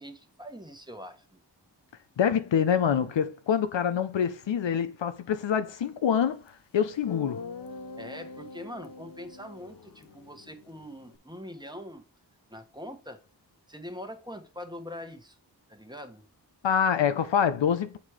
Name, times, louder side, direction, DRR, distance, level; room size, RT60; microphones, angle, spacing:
voice 1, 0.0-1.4 8.0-12.0 12.5-13.2 13.7-15.4 15.7-16.2, equal, 10° right, 1.2 m, -43 dB
voice 2, 2.2-6.4 6.7-7.4 16.6-18.0, left 8 dB, 80° left, 0.7 m, -25 dB
Guitar, 6.5-6.6 7.1-11.2, left 3 dB, 50° left, 0.8 m, -44 dB
7.4 x 3.1 x 4.8 m
cardioid pair, 55°, 44 cm